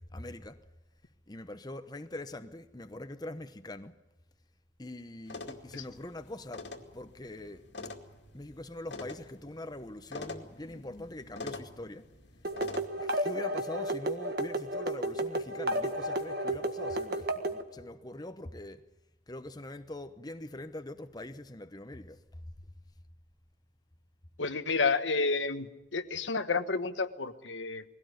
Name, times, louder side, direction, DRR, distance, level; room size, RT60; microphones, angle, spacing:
voice 1, 0.1-0.6 1.3-4.0 4.8-7.7 8.3-12.1 13.0-18.8 19.3-22.2, left 1 dB, 20° left, 0.9 m, -43 dB
sound 1, 5.3-12.9, left 2 dB, 70° left, 2.3 m, -45 dB
sound 2, 12.4-17.6, right 1 dB, 55° right, 1.7 m, -32 dB
voice 2, 24.4-27.8, left 4 dB, 90° left, 1.3 m, -30 dB
21.0 x 17.0 x 9.5 m
head